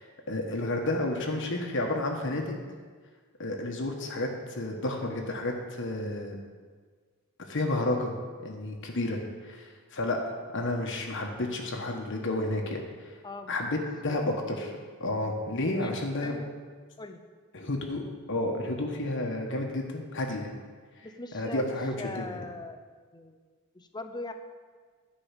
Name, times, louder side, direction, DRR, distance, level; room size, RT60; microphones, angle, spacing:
voice 1, 0.0-2.6 3.4-6.4 7.5-8.1 8.4-9.6 9.9-10.2 10.5-12.8 13.5-14.7 15.0-16.4 17.5-20.5 21.3-22.4, left 2 dB, 60° left, 2 dB, 1.3 m, -31 dB
voice 2, 13.2-13.5 14.0-14.4 15.8-16.0 16.2-16.5 17.0-17.2 21.0-22.8 23.1-23.4 23.7-24.3, left 2 dB, 20° left, 7 dB, 0.7 m, -41 dB
10.5 x 5.4 x 8.2 m, 1.5 s
head